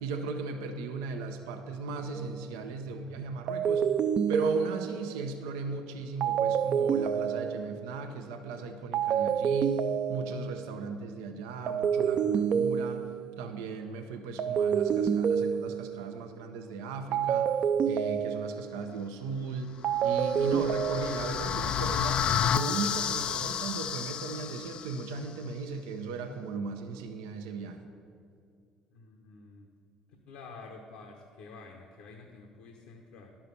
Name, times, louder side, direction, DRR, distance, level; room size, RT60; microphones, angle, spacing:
voice 1, 0.0-3.9 4.3-9.8 10.1-13.1 13.4-17.5 17.9-19.8 20.0-27.9, right 4 dB, 90° right, 6 dB, 0.7 m, -37 dB
sound 1, 2.1-2.4 3.5-5.2 6.2-7.9 8.9-10.6 11.7-13.3 14.4-16.1 17.1-18.8 19.8-21.2, right 7 dB, 50° right, 0.5 m, -28 dB
voice 2, 2.7-3.4 28.9-29.7 30.3-33.4, left 3 dB, 80° left, 2 dB, 0.9 m, -49 dB
sound 2, 20.0-25.1, left 8 dB, 50° left, 0.4 m, -31 dB
11.0 x 5.7 x 6.8 m, 2.3 s
supercardioid pair, 75°, 2 cm